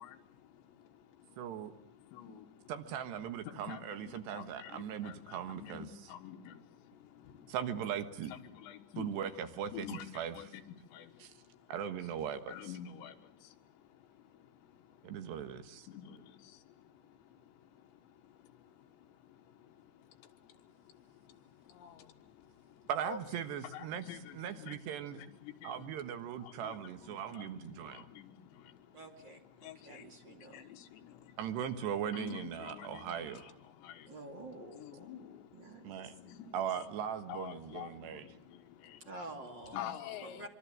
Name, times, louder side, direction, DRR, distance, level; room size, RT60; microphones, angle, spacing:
voice 1, 0.0-2.7 3.4-7.6 8.3-9.1 9.7-11.7 12.5-23.2 23.6-26.0 26.3-29.0 29.5-31.4 32.1-36.8 37.3-39.1 39.7-40.5, left 9 dB, 90° left, 7 dB, 3.9 m, -50 dB
voice 2, 1.4-1.7 2.7-5.9 7.5-8.3 9.0-10.5 11.2-11.3 11.7-12.7 15.0-15.9 22.9-24.0 24.3-25.2 25.6-28.1 31.4-33.6 35.8-36.2 36.5-38.3, right 9 dB, 75° right, 9 dB, 3.6 m, -39 dB
voice 3, 28.9-30.7 34.1-35.1 35.5-36.1 39.1-40.5, right 2 dB, 30° right, 4 dB, 2.4 m, -49 dB
25.0 x 24.5 x 7.7 m, 0.71 s
omnidirectional pair, 5.0 m